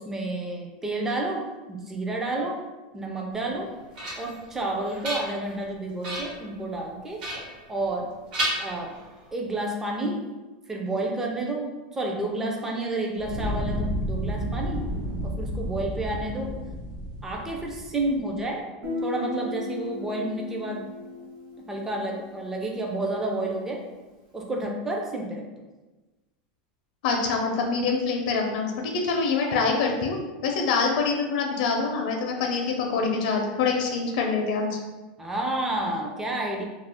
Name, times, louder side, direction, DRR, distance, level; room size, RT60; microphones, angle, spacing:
voice 1, 0.0-1.4 1.7-2.6 2.9-3.7 4.2-7.2 7.7-8.1 8.6-8.9 9.3-10.3 10.7-14.9 15.2-16.5 17.2-18.6 19.0-20.9 21.7-23.8 24.3-25.5 35.2-36.6, right 2 dB, 10° right, 0 dB, 0.4 m, -30 dB
sound 1, 3.5-4.4 4.8-5.6 6.0-6.5 7.2-8.0 8.3-9.3, right 1 dB, 75° right, 1.1 m, -33 dB
Fire, 13.1-18.3, equal, 55° right, 0.5 m, -31 dB
Guitar, 18.8-22.5, left 2 dB, 35° right, 0.8 m, -35 dB
voice 2, 27.0-30.2 30.4-34.8, left 4 dB, 65° left, 1 dB, 0.5 m, -25 dB
2.4 x 2.3 x 3.4 m, 1.2 s
supercardioid pair, 150°, 5 cm